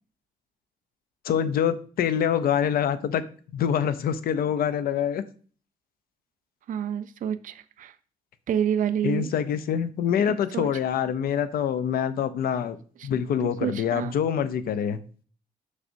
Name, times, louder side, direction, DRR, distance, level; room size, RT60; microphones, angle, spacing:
voice 1, 1.2-3.2 3.5-5.2 9.0-12.8 13.0-15.0, left 8 dB, 90° left, 0.5 m, -25 dB
voice 2, 6.7-7.9 8.5-9.3 10.2-10.7 13.0-13.1 13.6-14.1, right 9 dB, 65° right, 0.4 m, -28 dB
6.3 x 6.1 x 2.6 m
wide cardioid pair, 140°, 15 cm